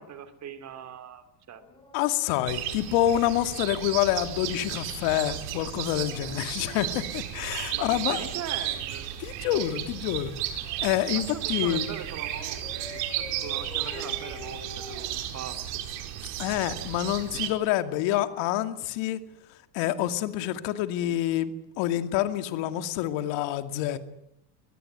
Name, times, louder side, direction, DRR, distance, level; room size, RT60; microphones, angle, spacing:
voice 1, 0.0-1.6 7.7-9.1 11.1-15.8, right 8 dB, 35° right, 10 dB, 3.0 m, -41 dB
Dog, 1.5-3.4 5.9-8.2 9.5-11.2 12.3-15.9 16.9-18.5 19.8-20.0, left 2 dB, 10° left, 5.1 m, -48 dB
voice 2, 1.9-8.2 9.2-10.3 10.8-11.9 16.4-19.2 19.7-21.5 21.8-24.0, left 13 dB, 65° left, 9 dB, 2.5 m, -27 dB
sound 1, 2.5-17.5, right 12 dB, 70° right, 4.6 m, -34 dB
22.5 x 21.5 x 9.4 m, 0.82 s
cardioid pair, 145°, 47 cm